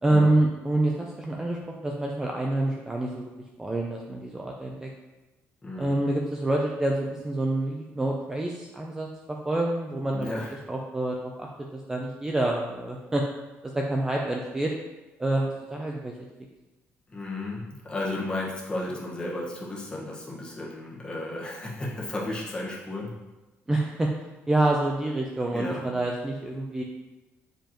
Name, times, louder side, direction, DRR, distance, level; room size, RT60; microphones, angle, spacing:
voice 1, 0.0-3.3 3.6-4.9 5.8-10.3 10.7-13.2 13.6-14.7 15.2-16.1 23.7-24.1 24.5-26.8, right 2 dB, 10° right, -1 dB, 0.5 m, -27 dB
voice 2, 5.6-6.0 10.1-10.6 17.1-23.1 25.5-25.9, left 2 dB, 20° left, -4 dB, 1.4 m, -34 dB
6.8 x 5.1 x 3.0 m, 1.1 s
cardioid pair, 145°, 5 cm